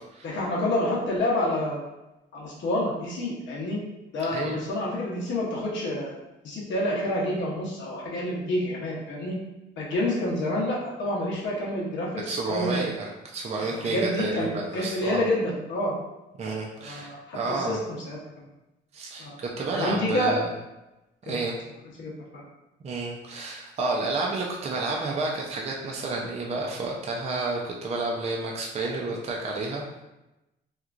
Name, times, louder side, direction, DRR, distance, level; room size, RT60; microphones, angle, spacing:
voice 1, 0.2-1.8 2.3-3.8 4.1-6.1 6.4-9.4 9.8-12.8 13.8-14.5 14.7-15.9 16.9-18.2 19.2-19.4 19.7-20.4 21.3-21.4 22.0-22.4, left 1 dB, 70° left, -4 dB, 0.9 m, -28 dB
voice 2, 12.3-15.3 16.4-17.8 18.9-20.5 21.2-21.6 22.8-30.0, right 3 dB, 35° right, -2 dB, 0.5 m, -30 dB
3.0 x 2.4 x 2.4 m, 0.97 s
cardioid pair, 90°, 20 cm